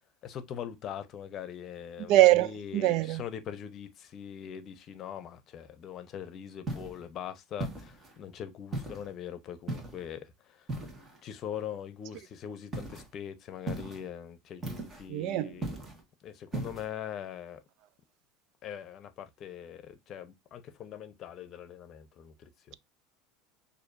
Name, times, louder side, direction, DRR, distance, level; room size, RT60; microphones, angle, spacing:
voice 1, 0.2-10.7 11.2-15.7 16.2-17.6 18.6-22.8, left 9 dB, 40° left, 0.8 m, -42 dB
voice 2, 2.1-3.2 15.1-15.5, right 15 dB, 60° right, 0.3 m, -23 dB
sound 1, 6.7-7.0 7.6-8.2 8.7-9.1 9.7-10.1 10.7-11.2 12.7-13.1 13.7-14.1 14.6-15.1 15.6-16.0 16.5-16.9, right 2 dB, 20° right, 1.5 m, -37 dB
6.4 x 2.7 x 2.6 m
supercardioid pair, 125°, 0 cm